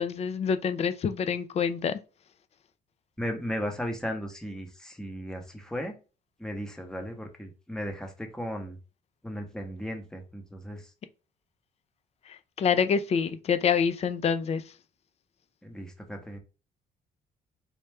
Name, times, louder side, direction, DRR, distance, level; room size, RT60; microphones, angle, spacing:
voice 1, 0.0-2.0 12.3-14.7, left 6 dB, 40° left, 0.4 m, -27 dB
voice 2, 3.2-6.0 6.4-8.8 9.2-10.9 15.6-16.4, equal, 5° left, 0.8 m, -36 dB
4.2 x 2.3 x 3.3 m
cardioid pair, 120°, 16 cm